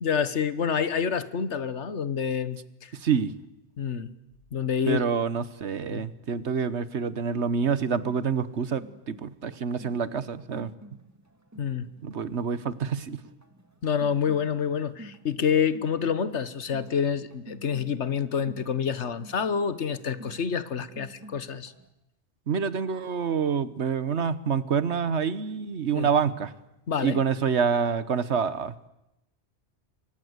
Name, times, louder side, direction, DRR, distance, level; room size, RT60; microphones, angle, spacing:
voice 1, 0.0-2.9 3.8-4.1 4.5-5.0 5.9-6.0 11.6-11.9 13.8-21.7 25.9-26.1 26.9-27.2, left 7 dB, 75° left, 14 dB, 1.6 m, -27 dB
voice 2, 2.9-3.3 4.9-10.7 12.0-13.2 22.5-26.5 27.0-28.9, right 6 dB, 75° right, 15 dB, 1.5 m, -27 dB
sound 1, 7.3-21.9, right 1 dB, 15° right, 2.1 m, -51 dB
29.0 x 24.0 x 8.2 m, 0.88 s
omnidirectional pair, 1.2 m